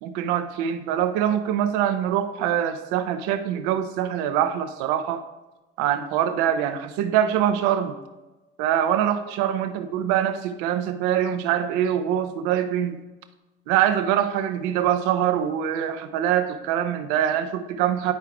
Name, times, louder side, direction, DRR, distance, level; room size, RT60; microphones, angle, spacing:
voice 1, 0.0-5.2 5.8-8.0 8.6-13.0 13.7-18.1, right 10 dB, 70° right, 9 dB, 0.8 m, -24 dB
10.5 x 4.6 x 3.4 m, 1.1 s
hypercardioid pair, 70°, 29 cm